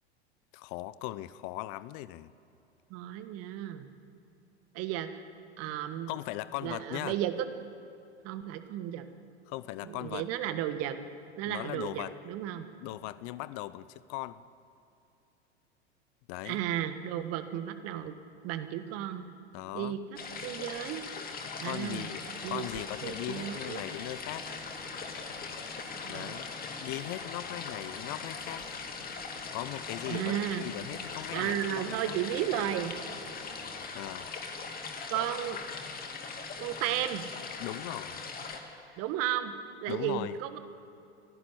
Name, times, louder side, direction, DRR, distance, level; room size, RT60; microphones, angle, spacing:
voice 1, 0.5-2.3 6.1-7.2 9.5-10.3 11.5-12.2 12.8-14.4 16.3-16.6 19.5-20.0 21.6-24.5 26.1-26.5 26.8-28.7 29.5-32.2 33.9-34.3 37.6-38.2 39.9-40.3, left 16 dB, 40° left, 17 dB, 0.7 m, -39 dB
voice 2, 2.9-3.9 4.7-5.2 5.6-6.1 6.6-7.5 8.2-9.0 9.8-11.0 11.4-12.7 16.4-18.1 18.4-19.2 19.7-20.0 20.4-21.0 21.6-22.1 22.4-23.8 26.0-26.4 30.1-30.6 31.3-32.9 35.1-35.6 36.6-37.2 39.0-39.5 39.8-40.6, right 11 dB, 45° right, 10 dB, 1.5 m, -34 dB
sound 1, 20.2-38.6, left 4 dB, 25° left, 2.4 m, -40 dB
Truck, 21.9-33.9, left 4 dB, 65° left, 2.4 m, -50 dB
29.5 x 11.0 x 8.3 m, 2.7 s
figure-of-eight pair, 85°, 34 cm